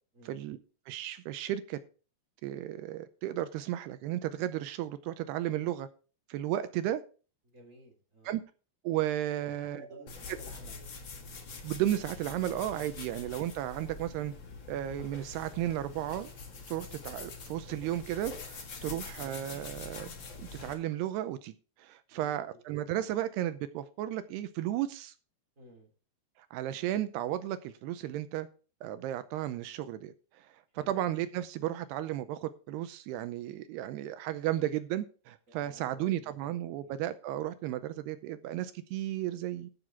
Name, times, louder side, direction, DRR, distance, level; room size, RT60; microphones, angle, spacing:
voice 1, 0.3-0.6 0.9-1.8 2.4-5.9 6.3-7.0 8.3-8.4 8.8-9.9 11.6-14.3 14.7-16.3 16.7-20.1 20.4-21.5 21.8-25.1 26.4-28.5 28.8-39.7, right 13 dB, 80° right, 2.6 m, -34 dB
voice 2, 7.4-8.3 9.4-11.0 18.8-19.2 22.1-22.4 25.5-25.9 30.7-31.0 35.5-36.9, right 1 dB, 20° right, 3.0 m, -54 dB
sound 1, 10.1-20.7, left 4 dB, 65° left, 1.2 m, -45 dB
13.5 x 6.7 x 4.5 m
omnidirectional pair, 4.9 m